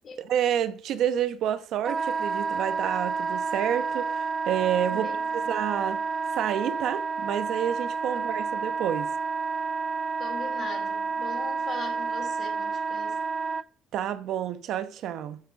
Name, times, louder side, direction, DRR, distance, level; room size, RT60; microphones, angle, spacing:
voice 1, 0.2-5.1 5.3-6.0 6.3-9.1 13.9-15.4, right 10 dB, 65° right, 0.9 m, -29 dB
Wind instrument woodwind instrument, 1.8-13.6, right 5 dB, 30° right, 0.4 m, -30 dB
voice 2, 4.9-5.5 10.2-13.2, left 5 dB, 40° left, 2.8 m, -40 dB
12.0 x 6.6 x 5.2 m
cardioid pair, 145°, 0 cm